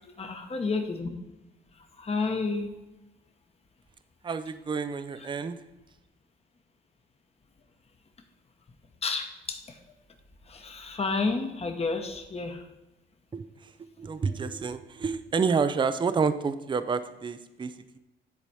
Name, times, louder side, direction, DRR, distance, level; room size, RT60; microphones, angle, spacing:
voice 1, 0.2-1.1 1.9-2.7 9.0-9.8 10.5-12.7, left 4 dB, 30° left, 4 dB, 1.1 m, -30 dB
voice 2, 4.2-5.6 13.3-13.7 14.0-18.0, right 5 dB, 25° right, 11 dB, 0.5 m, -29 dB
10.5 x 4.1 x 4.8 m, 0.96 s
cardioid pair, 90°, 20 cm